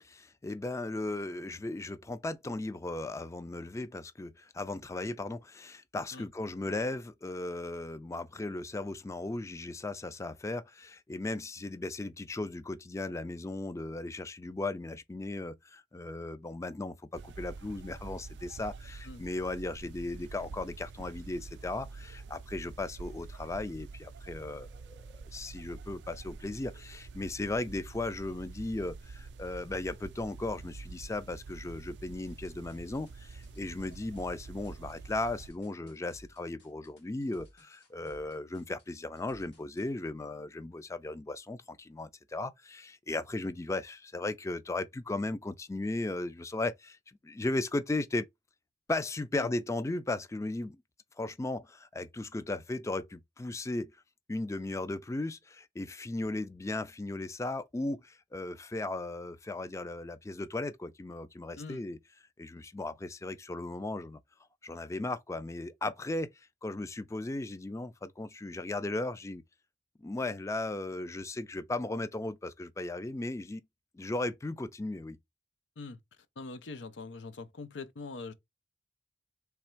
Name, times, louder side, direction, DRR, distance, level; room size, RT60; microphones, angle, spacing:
voice 1, 0.0-48.3 48.9-50.8 51.2-54.0 54.3-62.0 62.4-64.2 64.6-69.4 70.0-73.7 73.9-75.2, left 2 dB, 15° left, 0.3 m, -36 dB
sound 1, 17.1-35.5, right 4 dB, 65° right, 0.4 m, -47 dB
sound 2, 32.2-39.9, equal, 70° left, 2.0 m, -58 dB
voice 2, 76.4-78.3, left 3 dB, 90° left, 0.6 m, -43 dB
3.5 x 3.2 x 4.3 m
head